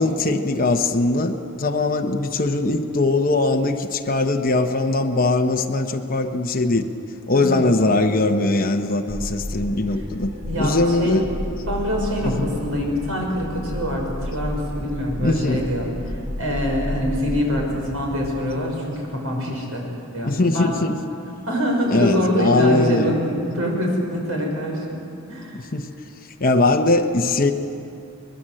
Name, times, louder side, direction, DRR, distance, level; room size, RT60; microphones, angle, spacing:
voice 1, 0.0-6.9 7.3-10.3 10.6-11.2 12.2-12.5 15.2-15.6 19.5-19.6 20.2-21.0 21.9-23.2 25.5-25.9 26.4-27.5, left 2 dB, 45° left, 3 dB, 1.1 m, -21 dB
sound 1, 9.1-18.3, left 1 dB, 40° right, 5.2 m, -32 dB
voice 2, 10.4-11.2 11.6-19.9 20.1-20.8 21.5-25.0 25.3-25.6, equal, 85° right, 0 dB, 6.2 m, -25 dB
23.5 x 21.0 x 7.8 m, 2.7 s
head